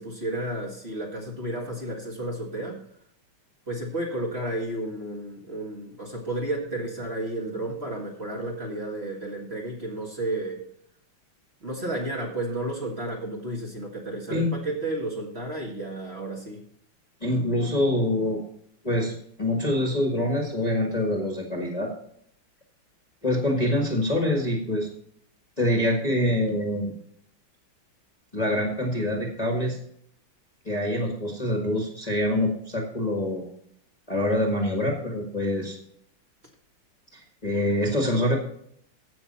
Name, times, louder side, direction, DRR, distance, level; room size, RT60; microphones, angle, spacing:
voice 1, 0.0-2.8 3.7-10.6 11.6-16.6, right 1 dB, 30° right, -1 dB, 1.9 m, -32 dB
voice 2, 17.2-18.4 18.8-21.9 23.2-24.9 25.6-26.9 28.3-29.8 30.6-33.5 34.1-35.8 37.1-38.4, left 1 dB, 20° left, -1 dB, 1.6 m, -25 dB
15.5 x 5.9 x 4.3 m, 0.68 s
omnidirectional pair, 2.4 m